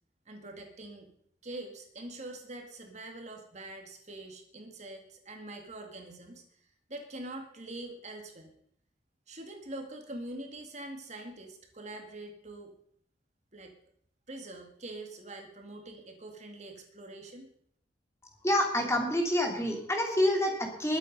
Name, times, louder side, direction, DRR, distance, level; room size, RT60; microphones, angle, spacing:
voice 1, 0.3-1.1 1.4-8.5 9.3-12.7 13.5-13.8 14.3-17.5, right 2 dB, 40° right, 3 dB, 2.1 m, -44 dB
voice 2, 18.4-21.0, left 1 dB, 15° left, 2 dB, 2.8 m, -27 dB
21.0 x 8.2 x 5.4 m, 0.67 s
head